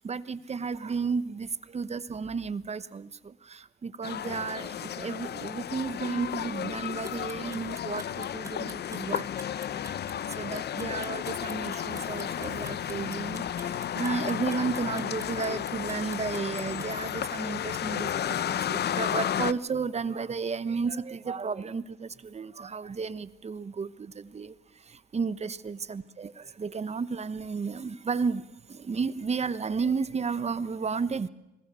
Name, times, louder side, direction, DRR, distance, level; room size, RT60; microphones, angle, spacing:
voice 1, 0.0-9.3 9.8-9.9 10.4-24.5 24.9-31.3, right 5 dB, 35° right, 1.0 m, -33 dB
sound 1, 4.0-19.5, left 10 dB, 55° left, 0.8 m, -33 dB
sound 2, 6.8-16.9, right 2 dB, 15° right, 2.2 m, -47 dB
26.0 x 20.0 x 6.9 m
cardioid pair, 90°, 20 cm